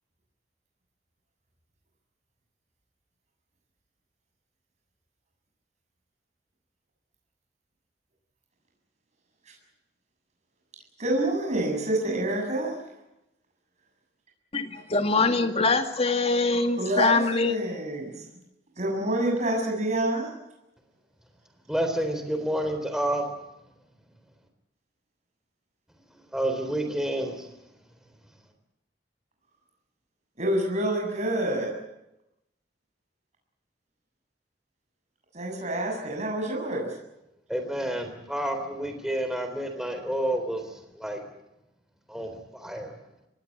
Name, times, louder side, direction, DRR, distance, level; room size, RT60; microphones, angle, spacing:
voice 1, 11.0-12.7 16.8-18.2 18.8-20.3 30.4-31.7 35.3-36.9, right 1 dB, 40° right, 0 dB, 7.5 m, -27 dB
voice 2, 14.5-17.6, left 3 dB, 35° left, 7 dB, 2.2 m, -23 dB
voice 3, 21.7-23.3 26.3-27.5 37.5-41.2 42.1-42.9, right 1 dB, 5° right, 5 dB, 3.7 m, -29 dB
24.5 x 19.5 x 8.8 m, 0.89 s
head